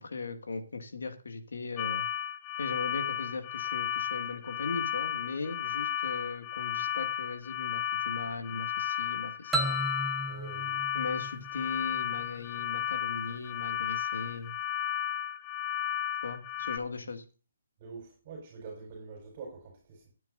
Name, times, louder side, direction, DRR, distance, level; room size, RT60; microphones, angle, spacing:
voice 1, 0.0-2.1 2.6-9.8 10.9-14.5 16.2-17.2, left 4 dB, 85° left, 2.0 m, -38 dB
sound 1, 1.8-16.8, left 11 dB, 20° left, 0.7 m, -34 dB
sound 2, 9.5-12.2, right 1 dB, 5° right, 1.1 m, -34 dB
voice 2, 10.3-10.9 17.8-20.1, right 4 dB, 35° right, 4.3 m, -45 dB
17.5 x 9.1 x 2.6 m
hypercardioid pair, 160°, 0 cm